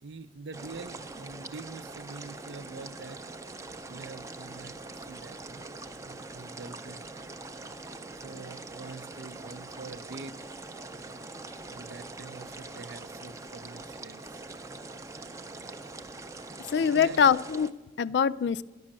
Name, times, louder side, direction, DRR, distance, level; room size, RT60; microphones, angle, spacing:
voice 1, 0.0-3.2 3.9-5.7 6.0-7.1 8.2-10.4 11.7-14.4 16.9-17.2 18.1-18.2, right 3 dB, 80° right, 13 dB, 0.6 m, -45 dB
sound 1, 0.5-17.7, right 3 dB, 15° right, 0.4 m, -43 dB
voice 2, 16.7-18.6, left 7 dB, 75° left, 18 dB, 0.3 m, -24 dB
12.0 x 6.3 x 8.6 m, 1.2 s
head